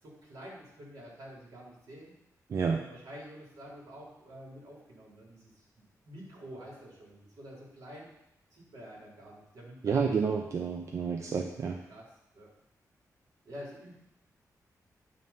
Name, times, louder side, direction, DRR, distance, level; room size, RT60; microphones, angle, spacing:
voice 1, 0.0-2.1 2.7-5.5 6.0-8.1 8.5-10.4 10.8-10.9 11.9-12.0 12.3-12.5 13.4-13.9, equal, 75° right, -4 dB, 2.6 m, -48 dB
voice 2, 2.5-2.8 9.8-11.8, right 5 dB, 50° right, 3 dB, 0.5 m, -29 dB
9.3 x 3.3 x 5.4 m, 0.84 s
wide cardioid pair, 165°, 6 cm